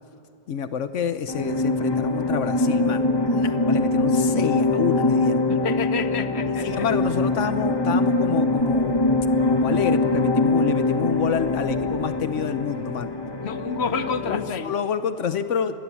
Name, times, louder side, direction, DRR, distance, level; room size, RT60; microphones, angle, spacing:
voice 1, 0.5-5.4 6.6-9.0 9.5-13.1 14.3-15.8, left 7 dB, 85° left, 11 dB, 1.2 m, -28 dB
sound 1, 1.3-14.6, left 2 dB, 20° left, 1.3 m, -23 dB
voice 2, 5.5-6.9 13.4-14.8, left 5 dB, 60° left, 11 dB, 1.3 m, -29 dB
29.0 x 22.5 x 8.5 m, 2.8 s
omnidirectional pair, 1.2 m